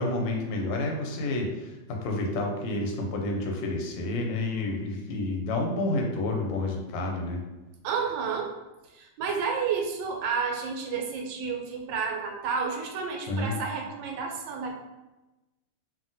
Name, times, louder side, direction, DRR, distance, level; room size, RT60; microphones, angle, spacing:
voice 1, 0.0-7.4 13.3-13.5, left 2 dB, 90° left, 1 dB, 1.3 m, -29 dB
voice 2, 7.8-8.5 8.9-14.7, right 5 dB, 85° right, 2 dB, 1.3 m, -31 dB
2.8 x 2.6 x 2.6 m, 1.0 s
omnidirectional pair, 2.0 m